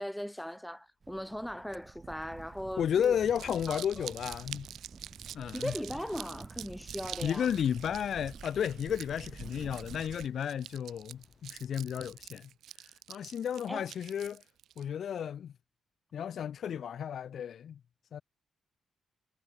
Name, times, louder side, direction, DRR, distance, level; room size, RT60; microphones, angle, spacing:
voice 1, 0.0-3.1 3.7-4.1 5.5-7.5 13.7-13.9, equal, ahead, 1.7 m, -39 dB
Crackle, 1.0-10.3, right 4 dB, 30° right, 6.3 m, -49 dB
sound 1, 2.4-12.3, left 5 dB, 35° left, 7.4 m, -65 dB
voice 2, 2.8-4.7 5.3-5.7 7.2-12.5 12.8-14.4 14.8-15.5 16.1-17.8 18.1-18.2, left 8 dB, 60° left, 0.3 m, -33 dB
Crumpling crinkling, 3.1-14.8, right 11 dB, 85° right, 3.1 m, -47 dB
cardioid pair, 125°, 0 cm